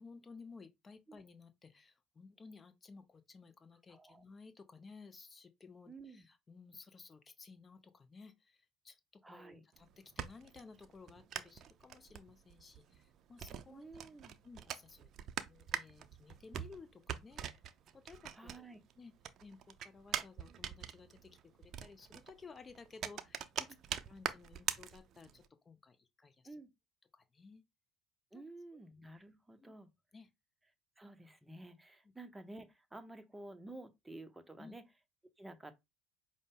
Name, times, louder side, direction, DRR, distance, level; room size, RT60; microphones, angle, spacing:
voice 1, 0.0-14.0 14.4-17.6 17.9-18.6 19.0-19.1 19.4-23.7 24.0-26.5 27.1-27.6 28.3-28.4 29.6-29.7 30.1-30.3 34.6-34.7, left 4 dB, 30° left, 0.6 m, -56 dB
voice 2, 3.9-4.2 5.9-6.3 9.2-9.7 13.7-14.3 18.3-18.8 26.4-26.7 28.3-29.9 31.0-34.8 35.4-35.7, right 2 dB, 10° right, 0.6 m, -52 dB
sound 1, 9.7-18.9 19.2-25.5, right 9 dB, 55° right, 0.4 m, -43 dB
5.1 x 2.0 x 3.6 m
hypercardioid pair, 70°, 0 cm